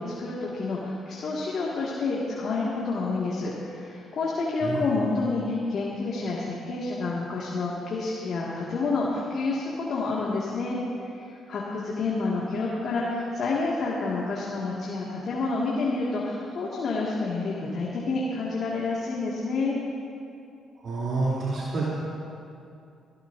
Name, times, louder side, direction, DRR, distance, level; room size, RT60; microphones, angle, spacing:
voice 1, 0.0-10.8 11.1-19.8, left 3 dB, 60° left, -5 dB, 2.1 m, -29 dB
voice 2, 20.8-21.8, right 3 dB, 60° right, -8 dB, 3.3 m, -28 dB
24.0 x 13.5 x 2.7 m, 2.6 s
cardioid pair, 90°, 0 cm